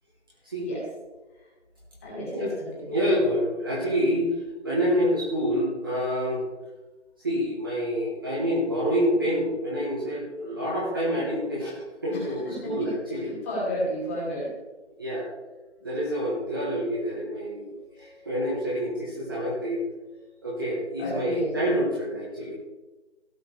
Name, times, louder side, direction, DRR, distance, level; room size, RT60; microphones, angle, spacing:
voice 1, 2.0-3.0 12.1-12.7 13.1-14.5 17.9-18.3 21.0-21.5, equal, 10° left, -7 dB, 2.5 m, -33 dB
voice 2, 2.9-4.3 4.6-6.5 7.2-11.7 12.0-13.3 15.0-15.3 15.8-17.7 18.0-19.8 20.4-22.5, equal, 20° right, -6 dB, 1.4 m, -27 dB
16.5 x 7.2 x 3.3 m, 1.1 s
figure-of-eight pair, 170°, 36 cm